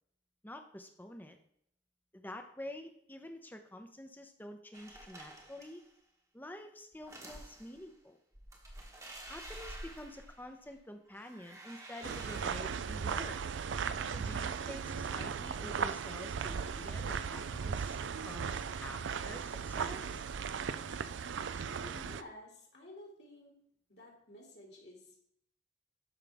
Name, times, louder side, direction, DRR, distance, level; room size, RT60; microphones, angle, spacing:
voice 1, 0.4-1.4 2.1-5.8 6.3-8.2 9.2-13.4 14.1-20.4, left 1 dB, 10° left, 6 dB, 0.9 m, -48 dB
sound 1, 4.7-5.9 6.9-7.8 8.3-10.8 11.1-12.9, right 1 dB, 15° right, 1.3 m, -50 dB
sound 2, 12.0-22.2, right 6 dB, 80° right, 0.4 m, -37 dB
voice 2, 21.6-23.5 23.9-25.2, left 1 dB, 60° left, -1 dB, 2.7 m, -52 dB
12.0 x 5.5 x 3.6 m, 0.70 s
head